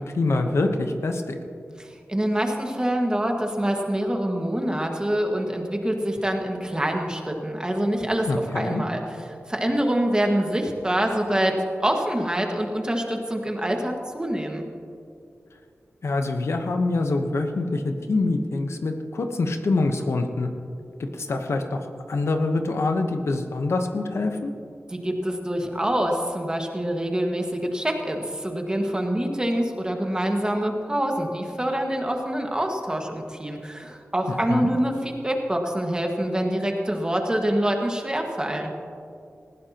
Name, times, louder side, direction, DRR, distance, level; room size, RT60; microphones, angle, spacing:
voice 1, 0.0-1.4 8.3-8.8 16.0-20.5 21.0-24.5 34.3-34.7, left 3 dB, 75° left, 5 dB, 1.0 m, -25 dB
voice 2, 1.8-8.3 8.5-9.0 9.5-11.5 11.8-14.6 24.9-38.7, right 1 dB, 15° right, 2 dB, 1.7 m, -25 dB
19.0 x 15.5 x 3.0 m, 2.5 s
wide cardioid pair, 75°, 5 cm